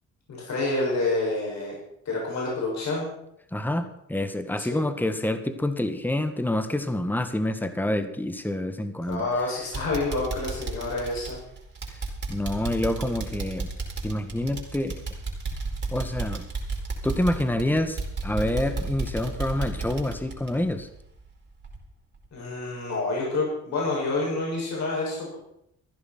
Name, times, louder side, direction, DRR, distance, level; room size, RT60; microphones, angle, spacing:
voice 1, 0.3-1.7 2.0-3.1 4.6-4.8 9.1-11.4 22.3-25.4, left 2 dB, 65° left, -3 dB, 7.0 m, -28 dB
voice 2, 3.5-9.3 11.9-12.0 12.3-13.7 14.0-15.0 15.9-16.5 17.0-20.9, left 1 dB, 5° left, 9 dB, 1.5 m, -27 dB
sound 1, 9.1-9.4 9.7-21.3 21.6-21.8 22.2-22.3, right 3 dB, 35° right, 4.9 m, -33 dB
15.0 x 11.0 x 6.1 m, 0.76 s
cardioid pair, 90°, 30 cm